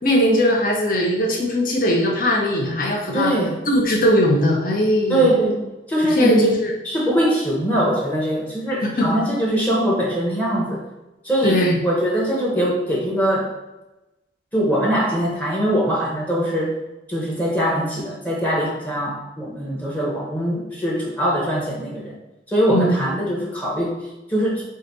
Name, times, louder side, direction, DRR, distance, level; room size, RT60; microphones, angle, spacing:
voice 1, 0.0-3.3 3.7-5.3 6.1-6.7 8.8-9.1 11.4-11.8 22.7-22.9, equal, 50° left, 0 dB, 0.9 m, -19 dB
voice 2, 3.1-3.6 5.1-6.5 6.8-10.8 11.2-13.5 14.5-16.8 17.1-22.1 22.5-24.6, equal, 10° left, -4 dB, 0.9 m, -22 dB
5.0 x 2.6 x 4.0 m, 1.0 s
head